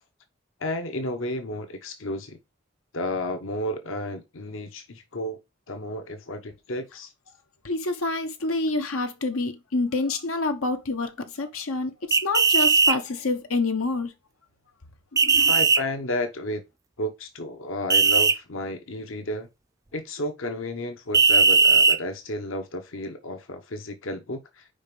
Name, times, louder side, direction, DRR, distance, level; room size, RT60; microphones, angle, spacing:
voice 1, 0.6-2.4 2.9-5.4 5.7-7.1 15.5-16.6 17.0-19.5 19.9-24.7, left 1 dB, 70° left, 1.0 m, -32 dB
voice 2, 7.6-14.1 15.2-15.5, left 3 dB, 90° left, 1.1 m, -27 dB
sound 1, 12.1-13.0 15.2-15.8 17.9-18.3 21.1-22.0, right 4 dB, 15° right, 0.3 m, -18 dB
5.1 x 5.0 x 5.2 m
head